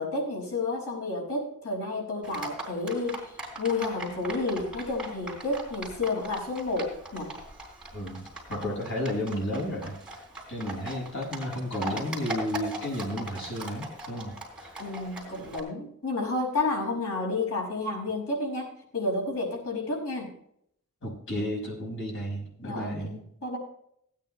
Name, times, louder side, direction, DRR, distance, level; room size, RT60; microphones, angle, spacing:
voice 1, 0.0-3.2 3.6-7.3 14.8-20.3 22.6-23.6, left 3 dB, 75° left, -1 dB, 5.5 m, -31 dB
Livestock farm animals working animals, 2.2-15.6, right 1 dB, 5° right, 3.4 m, -40 dB
voice 2, 7.9-8.2 8.5-9.9 10.5-14.7 21.0-23.2, equal, 60° left, -1 dB, 5.7 m, -32 dB
16.5 x 9.4 x 3.2 m, 0.70 s
head